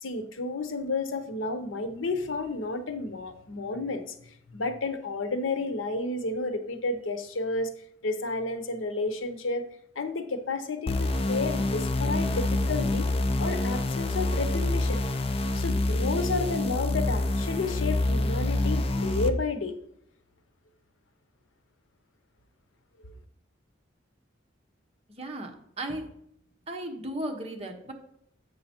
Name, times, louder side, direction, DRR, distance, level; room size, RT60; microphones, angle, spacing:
voice 1, 0.0-7.7 8.0-9.6 10.0-13.1 13.4-15.0 15.5-19.8, left 3 dB, 90° left, 9 dB, 0.8 m, -31 dB
sound 1, 10.9-19.3, left 2 dB, 30° left, 0.4 m, -27 dB
voice 2, 25.1-26.1 26.7-27.9, right 1 dB, 30° right, 2 dB, 1.0 m, -35 dB
7.6 x 5.5 x 4.3 m, 0.72 s
head